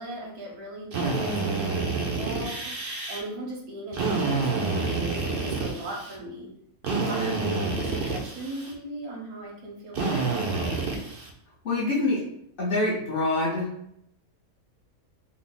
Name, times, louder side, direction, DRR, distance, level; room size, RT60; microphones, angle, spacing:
voice 1, 0.0-2.7 3.1-6.5 6.9-10.7, right 1 dB, 85° right, -1 dB, 1.5 m, -38 dB
Drill, 0.9-3.2 3.9-6.2 6.8-8.7 9.9-11.3, right 3 dB, 60° right, 0.6 m, -28 dB
voice 2, 11.6-12.2 12.6-13.7, left 2 dB, 45° left, -6 dB, 0.8 m, -25 dB
3.5 x 2.0 x 3.8 m, 0.74 s
omnidirectional pair, 1.6 m